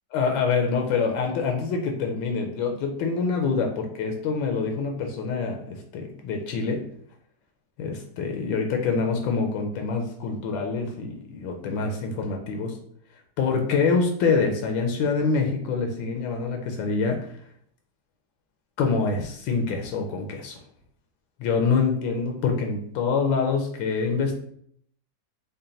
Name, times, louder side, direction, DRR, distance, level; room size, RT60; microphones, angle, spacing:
voice 1, 0.1-6.8 7.8-12.8 13.4-17.3 18.8-20.6 21.4-24.3, left 4 dB, 80° left, 3 dB, 1.3 m, -25 dB
3.9 x 2.1 x 3.8 m, 0.64 s
omnidirectional pair, 2.1 m